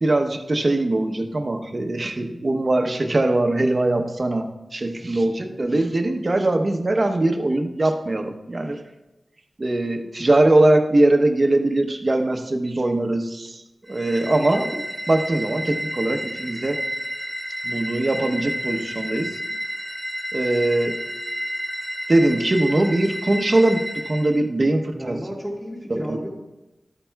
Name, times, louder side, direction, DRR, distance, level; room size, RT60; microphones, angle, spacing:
voice 1, 0.0-4.5 4.7-8.8 9.6-13.5 13.9-16.8 17.6-19.3 20.3-21.0 22.1-23.8 24.1-25.2 26.1-26.2, right 2 dB, 45° right, 5 dB, 0.9 m, -21 dB
voice 2, 5.0-5.6 24.9-26.5, equal, 5° left, -4 dB, 1.9 m, -34 dB
sound 1, 13.9-24.4, equal, 25° left, 3.0 m, -31 dB
12.5 x 8.5 x 2.3 m, 1.0 s
wide cardioid pair, 60°, 0 cm